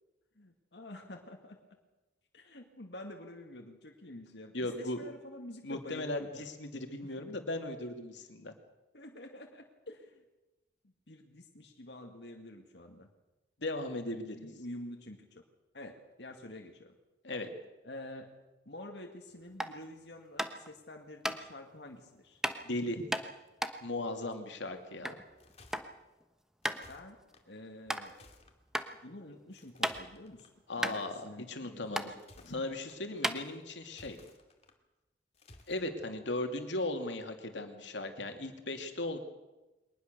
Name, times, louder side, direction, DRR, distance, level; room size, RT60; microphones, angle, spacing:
voice 1, 0.4-1.6 2.3-6.5 7.0-7.3 8.9-10.2 10.8-13.1 14.3-15.3 15.7-16.9 17.8-18.4 18.7-22.4 26.9-27.2 27.5-28.2 29.0-30.5 30.8-32.1 32.4-32.6, left 1 dB, 65° left, 2 dB, 2.1 m, -48 dB
voice 2, 4.5-5.0 5.6-8.5 13.6-14.4 17.2-17.5 22.6-23.0 23.8-25.2 30.7-32.1 32.5-34.2 35.7-39.2, left 2 dB, 85° left, 6 dB, 2.7 m, -37 dB
sound 1, 19.5-19.8 20.4-20.7 21.2-21.4 22.4-22.6 23.1-25.2 25.5-25.9 26.2-26.3 26.6-26.8 27.3-27.4 27.9-28.0 28.7-28.9 29.3-30.3 30.5-30.6 30.8-31.6 31.9-32.1 32.7-32.8 33.2-33.9, equal, 5° right, 1.1 m, -34 dB
sound 2, 25.2-25.8 26.6-27.4 28.0-28.6 29.5-30.5 32.0-33.0 33.8-34.7 35.3-35.8, left 2 dB, 35° left, 2.5 m, -58 dB
23.0 x 19.5 x 6.8 m, 1.1 s
head